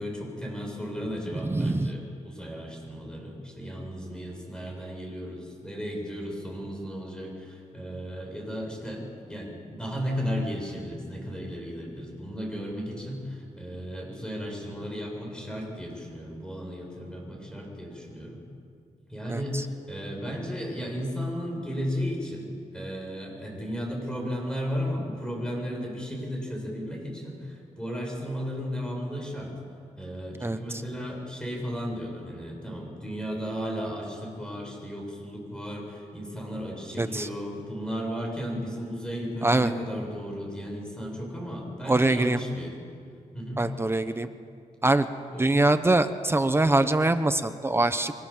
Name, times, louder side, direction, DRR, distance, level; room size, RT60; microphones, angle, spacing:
voice 1, 0.0-18.4 19.1-29.5 30.0-42.8 43.3-43.6 45.3-45.5, equal, 5° left, 0 dB, 7.4 m, -34 dB
voice 2, 1.3-1.9 19.3-19.7 30.4-30.8 37.0-37.3 39.4-39.7 41.9-42.4 43.6-44.3 44.8-45.1 45.4-48.1, right 2 dB, 20° right, 10 dB, 0.9 m, -24 dB
30.0 x 24.0 x 7.5 m, 2.3 s
wide cardioid pair, 140°, 13 cm